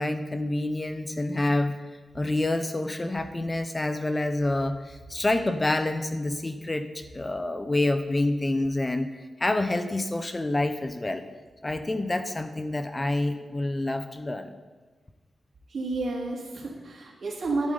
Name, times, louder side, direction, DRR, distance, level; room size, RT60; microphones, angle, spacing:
voice 1, 0.0-1.8 2.1-9.1 9.4-11.2 11.6-14.5, left 2 dB, 25° left, 9 dB, 0.8 m, -27 dB
voice 2, 15.7-17.7, right 2 dB, 65° right, -1 dB, 2.7 m, -30 dB
11.5 x 11.0 x 4.0 m, 1.3 s
cardioid pair, 65°, 0 cm